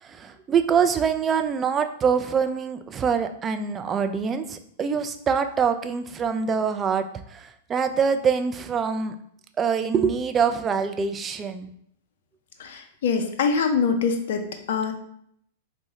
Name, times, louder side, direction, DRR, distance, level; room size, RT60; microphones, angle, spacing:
voice 1, 0.0-9.2 9.6-11.7, right 6 dB, 20° right, 9 dB, 0.3 m, -24 dB
voice 2, 12.6-14.9, left 5 dB, 60° left, 6 dB, 0.5 m, -24 dB
4.4 x 2.1 x 3.0 m, 0.69 s
figure-of-eight pair, 100°, 0 cm